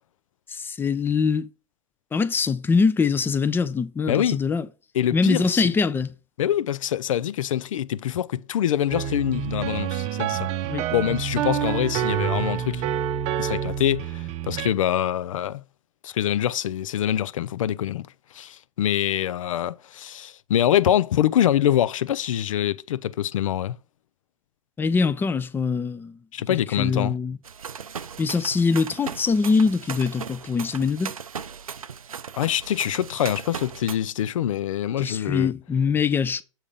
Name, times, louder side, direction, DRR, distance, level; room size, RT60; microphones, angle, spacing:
voice 1, 0.5-1.5 2.1-4.7 5.1-6.1 10.7-10.9 24.8-26.2 26.5-27.4 28.2-31.1 35.0-36.4, left 5 dB, 10° left, 0.5 m, -23 dB
voice 2, 4.1-4.4 4.9-5.7 6.4-10.5 10.9-12.8 13.4-15.6 16.0-18.1 18.3-23.8 26.3-27.2 32.4-35.5, left 11 dB, 70° left, 0.4 m, -25 dB
sound 1, 8.9-14.7, right 9 dB, 40° right, 0.7 m, -27 dB
sound 2, 27.4-34.0, right 7 dB, 90° right, 0.5 m, -37 dB
7.1 x 3.5 x 5.4 m
figure-of-eight pair, 100°, 18 cm